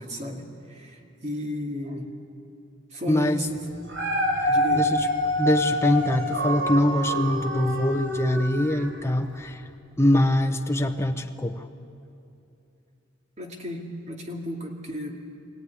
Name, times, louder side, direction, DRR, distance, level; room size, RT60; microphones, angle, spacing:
voice 1, 0.0-2.1 2.9-3.8 4.5-4.9 13.4-15.1, left 1 dB, 35° right, 1 dB, 2.4 m, -34 dB
voice 2, 3.1-3.4 4.4-5.1 5.4-9.6 10.0-11.7, left 1 dB, 15° left, 6 dB, 0.9 m, -23 dB
Dog, 3.7-9.1 9.6-9.7, equal, 65° right, 3.1 m, -26 dB
24.0 x 17.5 x 9.7 m, 2.7 s
head